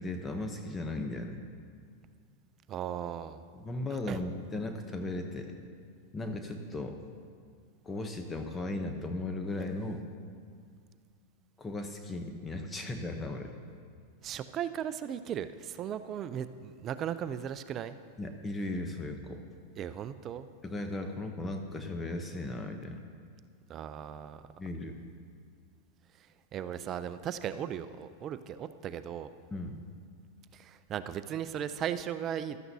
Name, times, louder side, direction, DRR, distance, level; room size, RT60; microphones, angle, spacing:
voice 1, 0.0-1.4 3.5-5.5 6.1-7.0 7.8-10.1 11.6-13.5 18.2-19.4 20.6-23.0 24.6-25.0 29.5-29.8, left 2 dB, 15° left, 5 dB, 0.8 m, -36 dB
voice 2, 2.7-3.4 4.1-4.2 14.2-18.0 19.8-20.5 23.7-24.4 26.2-29.3 30.5-32.6, right 9 dB, 35° right, 12 dB, 0.4 m, -37 dB
15.0 x 12.5 x 2.7 m, 2.2 s
supercardioid pair, 130°, 0 cm